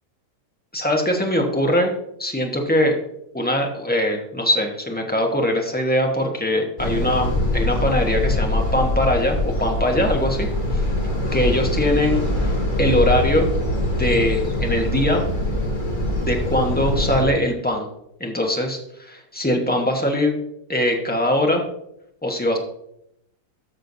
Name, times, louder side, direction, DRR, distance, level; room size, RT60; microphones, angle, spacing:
voice 1, 0.7-1.9 2.2-3.0 3.3-10.8 11.3-13.5 13.9-15.2 16.2-17.9 18.2-18.8 19.3-20.4 20.7-21.6 22.2-22.6, left 1 dB, 10° left, 1 dB, 0.6 m, -21 dB
sound 1, 6.8-17.2, left 1 dB, 25° left, 2.1 m, -23 dB
12.5 x 6.4 x 2.7 m, 0.78 s
omnidirectional pair, 2.0 m